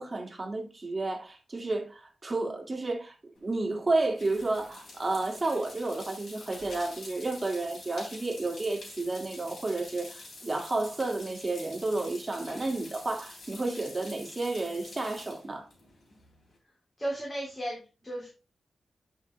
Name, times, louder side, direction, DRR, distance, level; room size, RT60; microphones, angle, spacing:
voice 1, 0.0-3.1 3.4-15.7, right 2 dB, 30° right, 2.1 m, -31 dB
sound 1, 3.4-16.6, left 2 dB, 55° left, 3.5 m, -48 dB
voice 2, 17.0-18.3, right 1 dB, 20° left, 3.2 m, -35 dB
9.5 x 5.5 x 3.2 m
cardioid pair, 80°, 0 cm